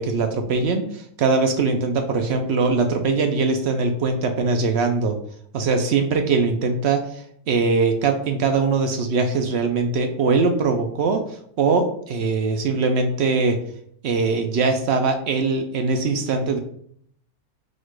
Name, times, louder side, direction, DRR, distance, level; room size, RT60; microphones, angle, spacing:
voice 1, 0.0-5.2 5.5-13.6 14.0-16.6, right 4 dB, 65° right, 5 dB, 0.6 m, -21 dB
4.3 x 2.2 x 4.5 m, 0.65 s
omnidirectional pair, 1.5 m